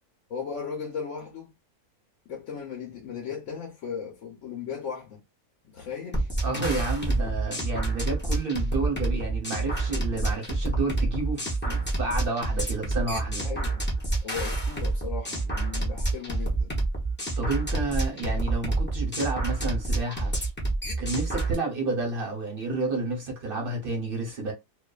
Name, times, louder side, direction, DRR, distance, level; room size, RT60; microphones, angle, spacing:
voice 1, 0.3-1.5 2.3-5.2 5.7-6.3 13.4-13.9 14.2-16.7, left 6 dB, 65° left, 1.0 m, -36 dB
sound 1, 6.1-21.5, right 2 dB, 10° left, 0.5 m, -28 dB
voice 2, 6.4-13.4 17.4-20.3 21.0-24.5, right 3 dB, 50° right, 0.8 m, -30 dB
2.5 x 2.3 x 2.2 m
omnidirectional pair, 1.6 m